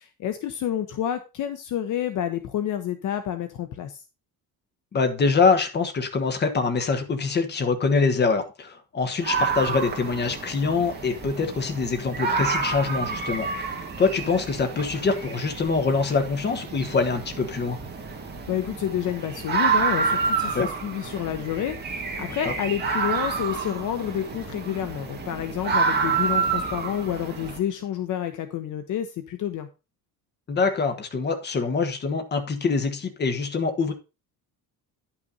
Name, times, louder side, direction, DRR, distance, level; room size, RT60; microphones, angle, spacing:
voice 1, 0.0-4.0 18.5-29.7, left 10 dB, 55° left, 9 dB, 0.9 m, -29 dB
voice 2, 4.9-17.8 20.5-20.7 22.4-22.5 30.5-33.9, left 4 dB, 30° left, 6 dB, 1.3 m, -24 dB
sound 1, 9.2-27.6, right 5 dB, 25° right, 2.0 m, -29 dB
10.5 x 5.9 x 3.9 m, 0.29 s
cardioid pair, 170°, 37 cm